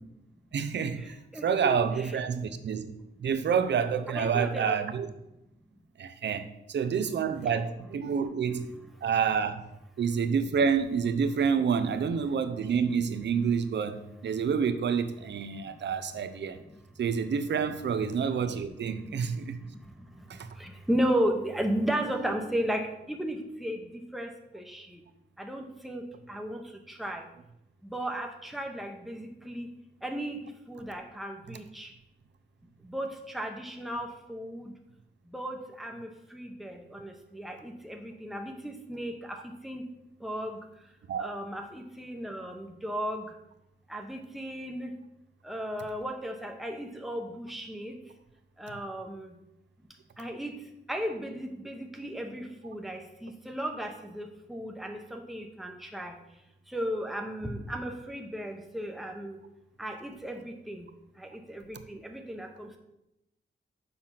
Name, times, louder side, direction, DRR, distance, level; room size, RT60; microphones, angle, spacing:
voice 1, 0.5-1.2 1.4-2.9 3.2-5.1 6.0-8.7 9.0-9.6 10.0-16.6 17.0-19.6 20.3-20.5 22.0-22.3 41.1-41.4 48.7-48.8, right 6 dB, 75° right, 10 dB, 0.7 m, -28 dB
voice 2, 1.3-2.1 4.1-4.9 20.6-23.8 24.1-24.3 24.5-24.8 25.4-26.0 26.3-26.6 27.0-27.2 27.9-29.7 30.0-30.4 30.7-31.9 32.9-33.1 33.3-34.7 35.3-39.4 39.6-39.8 40.2-40.6 41.2-43.2 43.9-44.9 45.5-47.9 48.6-49.3 50.2-50.5 50.9-56.1 56.7-59.4 59.8-60.9 61.5-61.6 61.9-62.8, equal, ahead, 3 dB, 0.9 m, -34 dB
6.9 x 5.9 x 5.7 m, 0.87 s
wide cardioid pair, 170°, 18 cm